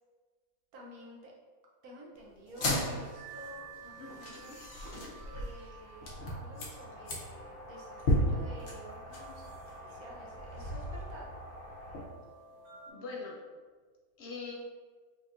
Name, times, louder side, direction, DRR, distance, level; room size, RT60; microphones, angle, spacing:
voice 1, 0.7-1.3 1.8-4.6 5.3-11.3, equal, 75° right, -3 dB, 1.3 m, -51 dB
sound 1, 2.5-12.0, equal, 55° left, 1.0 m, -36 dB
sound 2, 2.7-12.9, right 4 dB, 45° right, 1.6 m, -52 dB
voice 2, 4.0-4.6 12.9-13.4 14.2-14.5, left 4 dB, 70° left, -2 dB, 0.6 m, -43 dB
4.3 x 3.2 x 2.5 m, 1.5 s
omnidirectional pair, 1.6 m